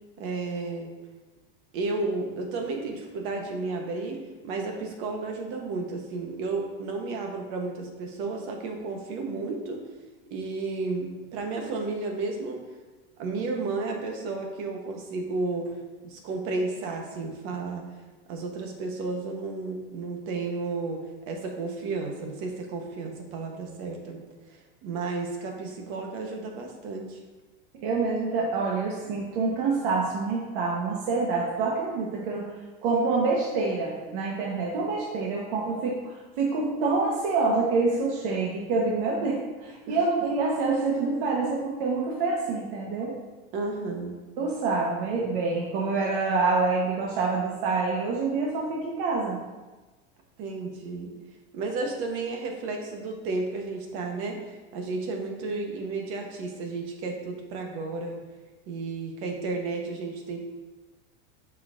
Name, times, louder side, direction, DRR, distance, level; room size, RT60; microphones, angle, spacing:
voice 1, 0.2-0.9 1.7-9.8 10.3-12.6 13.2-15.7 16.0-17.9 18.3-24.2 24.5-27.2 39.9-40.0 43.5-44.2 50.4-51.1 51.5-58.2 58.7-60.4, right 3 dB, 45° right, 2 dB, 1.2 m, -32 dB
voice 2, 27.8-32.4 32.8-43.1 44.4-49.4, right 3 dB, 65° right, -3 dB, 1.3 m, -26 dB
7.8 x 5.6 x 2.6 m, 1.2 s
supercardioid pair, 165°, 29 cm